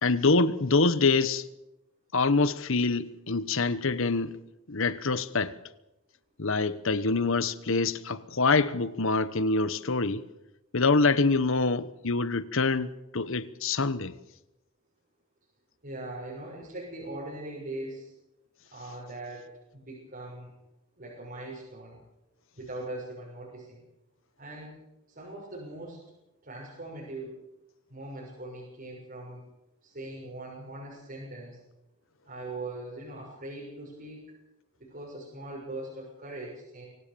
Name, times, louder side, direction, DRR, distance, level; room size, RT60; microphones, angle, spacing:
voice 1, 0.0-1.5 2.1-4.4 4.7-5.6 6.4-10.3 10.7-14.1, left 3 dB, 60° left, 1.1 m, -25 dB
voice 2, 15.8-18.1 18.7-19.5 19.7-20.5 21.0-22.0 22.5-23.9 24.4-24.7 25.1-26.0 26.4-27.4 27.9-29.4 29.8-31.6 32.2-34.4 34.8-36.9, right 2 dB, 40° right, 6.6 m, -41 dB
24.5 x 18.0 x 7.0 m
head